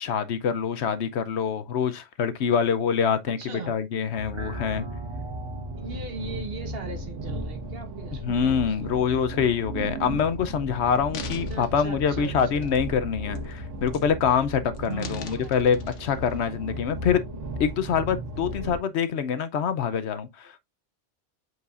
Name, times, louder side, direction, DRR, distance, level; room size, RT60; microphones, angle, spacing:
voice 1, 0.0-4.8 8.2-17.2 17.6-20.6, left 7 dB, 70° left, 0.9 m, -25 dB
voice 2, 3.4-3.8 5.8-8.8 11.2-12.7 14.9-15.6, right 4 dB, 55° right, 1.3 m, -39 dB
sound 1, 4.2-16.6, right 2 dB, 30° right, 0.8 m, -41 dB
sound 2, 4.5-18.8, right 1 dB, 80° right, 1.6 m, -36 dB
sound 3, 10.2-10.3 10.9-13.0 13.3-13.6 13.9-14.4 14.7-16.5 17.0-17.1, left 7 dB, 85° left, 1.2 m, -44 dB
8.2 x 4.7 x 2.4 m
omnidirectional pair, 1.2 m